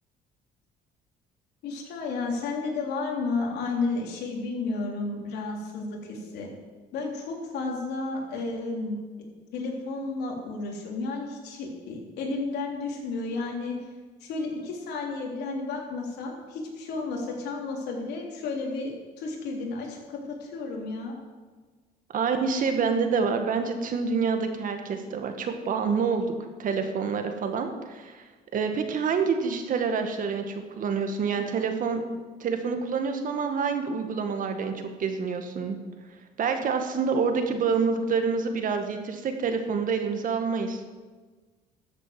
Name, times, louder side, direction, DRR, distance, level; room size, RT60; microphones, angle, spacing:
voice 1, 1.6-6.5 6.9-9.0 9.5-13.8 14.2-21.1, left 3 dB, 80° left, 0 dB, 3.6 m, -32 dB
voice 2, 22.1-26.3 26.6-32.0 32.4-35.8 36.4-40.8, right 5 dB, 50° right, 6 dB, 1.9 m, -27 dB
13.0 x 8.1 x 7.7 m, 1.4 s
cardioid pair, 110°, 17 cm